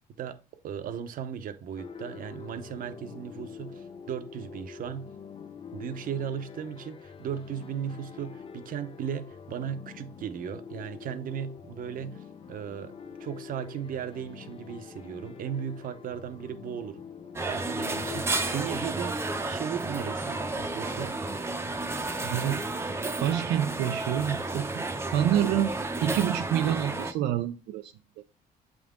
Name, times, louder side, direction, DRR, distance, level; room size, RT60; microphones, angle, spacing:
voice 1, 0.6-5.1 5.7-12.9 13.2-17.0 17.5-21.2, right 8 dB, 55° right, 0.8 m, -36 dB
sound 1, 1.8-18.8, left 6 dB, 30° left, 0.6 m, -45 dB
sound 2, 17.4-27.1, right 2 dB, 15° right, 0.7 m, -32 dB
voice 2, 22.2-22.6 23.2-24.8 25.1-25.7 26.0-28.2, right 11 dB, 80° right, 0.5 m, -27 dB
7.5 x 3.6 x 3.7 m
cardioid pair, 110°, 17 cm